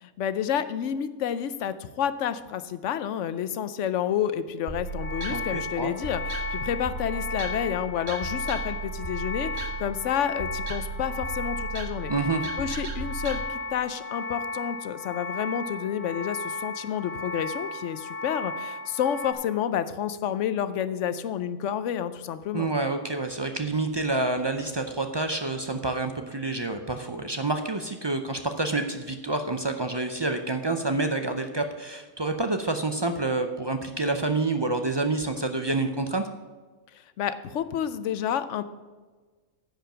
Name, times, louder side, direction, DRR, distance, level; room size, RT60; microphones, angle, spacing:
voice 1, 0.0-12.1 12.6-22.7 36.9-38.6, left 9 dB, 75° left, 13 dB, 0.9 m, -30 dB
sound 1, 4.7-13.4, right 4 dB, 60° right, 1.4 m, -36 dB
sound 2, 4.9-19.3, left 3 dB, 50° left, 1.3 m, -35 dB
voice 2, 5.3-5.9 12.1-12.4 22.5-36.3, right 2 dB, 40° right, 6 dB, 0.3 m, -28 dB
10.5 x 5.1 x 7.6 m, 1.4 s
omnidirectional pair, 1.3 m